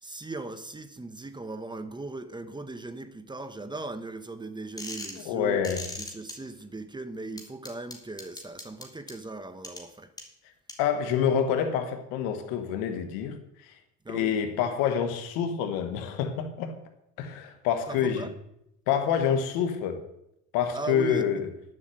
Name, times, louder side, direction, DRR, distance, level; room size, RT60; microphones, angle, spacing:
voice 1, 0.0-5.6 6.0-10.1 14.0-14.4 17.9-18.3 20.7-21.3, right 3 dB, 15° right, 1.1 m, -38 dB
sound 1, 4.8-5.2 5.6-6.3 7.4-9.1 9.6-9.8 10.2-10.3 10.7-10.8, left 1 dB, 10° left, 3.4 m, -38 dB
voice 2, 5.2-5.8 10.8-13.7 14.1-16.8 17.2-18.3 18.9-20.0 20.5-21.5, left 8 dB, 90° left, 1.5 m, -27 dB
11.5 x 7.6 x 7.8 m
supercardioid pair, 95°, 33 cm